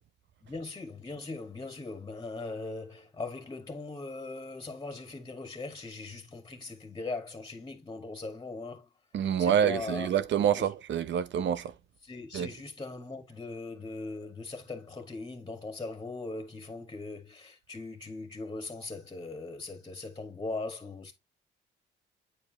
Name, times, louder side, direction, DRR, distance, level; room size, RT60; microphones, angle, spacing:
voice 1, 0.4-8.9 9.4-10.1 10.6-10.7 12.0-21.1, left 3 dB, 20° left, 2.0 m, -40 dB
voice 2, 9.1-11.7 12.3-12.5, right 9 dB, 65° right, 0.9 m, -27 dB
8.6 x 4.7 x 3.0 m
cardioid pair, 90°, 20 cm